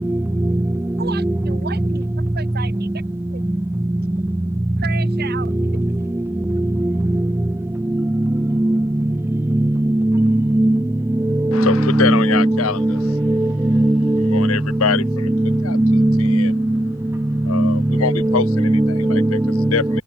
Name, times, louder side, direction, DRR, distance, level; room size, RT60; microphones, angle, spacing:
voice 1, 1.0-2.9 3.3-3.4 4.8-5.7, right 6 dB, 50° right, 2.8 m, -33 dB
voice 2, 8.2-8.8 9.5-10.8 11.3-14.5 15.3-16.5 17.5-19.7, right 1 dB, 10° right, 0.3 m, -17 dB
voice 3, 11.5-13.0 14.3-15.3 15.6-15.8 16.2-16.5 17.4-19.4 19.7-20.0, left 6 dB, 80° left, 0.8 m, -24 dB
head